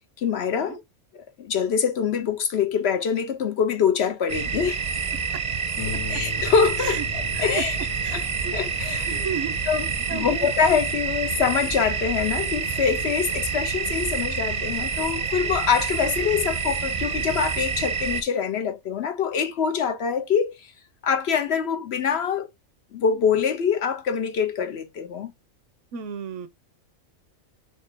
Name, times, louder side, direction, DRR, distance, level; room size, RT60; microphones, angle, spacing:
voice 1, 0.2-0.8 1.1-4.8 5.9-7.8 8.1-8.2 8.5-9.3 9.7-20.7 21.0-22.5 22.9-25.3, left 7 dB, 65° left, 0.8 m, -25 dB
sound 1, 4.3-18.2, right 6 dB, 40° right, 0.7 m, -28 dB
Harp, 5.8-14.9 15.8-15.9 16.4-16.5, left 9 dB, 90° left, 1.5 m, -42 dB
voice 2, 8.0-8.5 9.1-9.5 10.1-10.5 25.9-26.5, right 8 dB, 70° right, 1.0 m, -33 dB
4.3 x 3.3 x 3.3 m
omnidirectional pair, 1.4 m